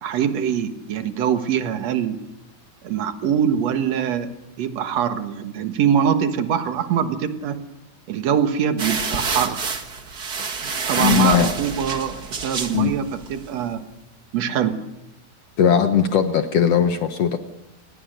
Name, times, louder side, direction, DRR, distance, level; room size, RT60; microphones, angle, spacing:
voice 1, 0.0-2.2 2.8-4.3 4.6-7.6 8.1-9.7 10.6-13.8 14.3-14.8, right 8 dB, 55° right, 8 dB, 2.2 m, -23 dB
sound 1, 8.8-13.5, right 5 dB, 40° right, 1.4 m, -28 dB
voice 2, 11.0-11.5 12.7-12.9 15.6-17.4, left 8 dB, 75° left, 8 dB, 1.4 m, -18 dB
29.0 x 20.5 x 6.7 m, 0.91 s
omnidirectional pair, 4.4 m